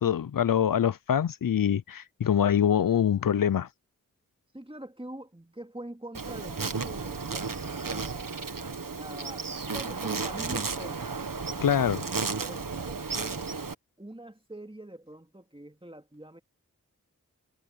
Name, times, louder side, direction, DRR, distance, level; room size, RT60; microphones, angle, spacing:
voice 1, 0.0-3.7 11.6-12.0, left 9 dB, 85° left, 0.5 m, -24 dB
voice 2, 4.5-8.3 9.0-11.1 11.7-13.5 14.0-16.4, right 1 dB, 15° right, 2.5 m, -44 dB
Insect, 6.1-13.7, right 4 dB, 80° right, 1.5 m, -33 dB
wide cardioid pair, 45°, 33 cm